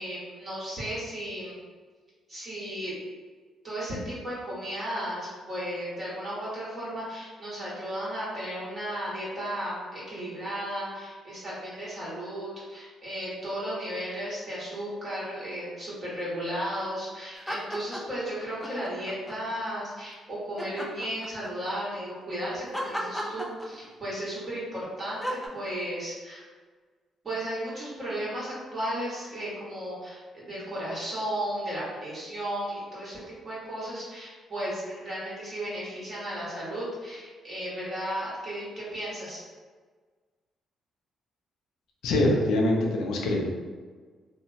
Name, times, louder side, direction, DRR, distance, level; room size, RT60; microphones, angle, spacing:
voice 1, 0.0-1.6 2.3-2.9 3.6-26.4 27.2-39.4, equal, 35° right, -8 dB, 1.5 m, -34 dB
sound 1, 17.3-18.2 18.6-19.6 20.6-21.7 22.7-24.1 25.2-25.5, equal, 10° left, 0.4 m, -34 dB
voice 2, 42.0-43.4, left 1 dB, 85° left, -1 dB, 0.5 m, -24 dB
2.9 x 2.1 x 2.7 m, 1.5 s
cardioid pair, 90°, 0 cm